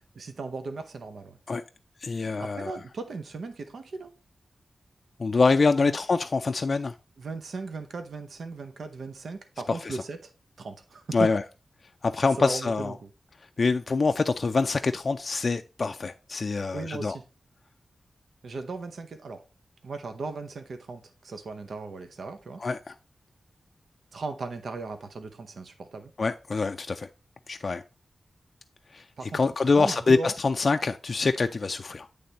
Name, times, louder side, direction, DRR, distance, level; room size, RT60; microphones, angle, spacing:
voice 1, 0.2-1.4 2.2-4.1 5.8-5.9 7.2-10.3 10.6-11.3 12.4-13.1 16.7-17.2 18.4-19.4 19.8-22.6 24.1-26.1 29.2-29.4 29.6-30.3, right 4 dB, 80° right, 0.7 m, -37 dB
voice 2, 2.0-2.8 5.2-7.0 9.7-10.0 11.1-11.4 12.0-12.9 13.6-17.2 22.6-22.9 26.2-27.1 27.5-27.8 28.9-29.0 29.3-32.1, left 4 dB, 50° left, 0.3 m, -25 dB
8.5 x 3.4 x 4.0 m
wide cardioid pair, 100°, 0 cm